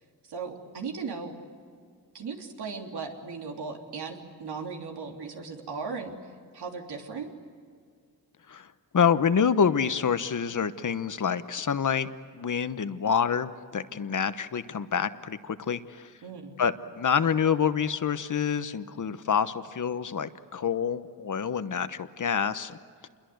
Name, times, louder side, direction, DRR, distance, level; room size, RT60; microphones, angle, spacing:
voice 1, 0.3-1.4 2.1-6.1 6.5-7.3 16.2-16.5, right 5 dB, 80° right, 2 dB, 3.4 m, -37 dB
voice 2, 8.5-12.1 12.4-16.1 16.6-22.8 23.0-23.1, left 7 dB, 50° left, 12 dB, 1.1 m, -27 dB
28.0 x 22.0 x 8.0 m, 2.1 s
cardioid pair, 85°, 39 cm